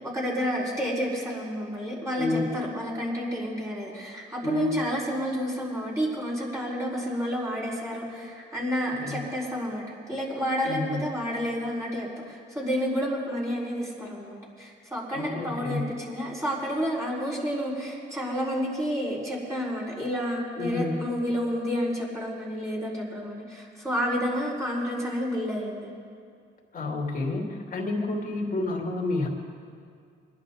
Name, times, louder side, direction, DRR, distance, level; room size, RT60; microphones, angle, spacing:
voice 1, 0.0-9.8 10.1-25.9, equal, 15° right, -7 dB, 4.4 m, -30 dB
voice 2, 2.2-2.6 4.4-4.9 9.0-9.2 10.7-11.0 15.1-15.9 20.6-20.9 26.7-29.3, left 2 dB, 45° left, -1 dB, 2.9 m, -29 dB
23.0 x 11.0 x 3.9 m, 2.3 s
cardioid pair, 90°, 20 cm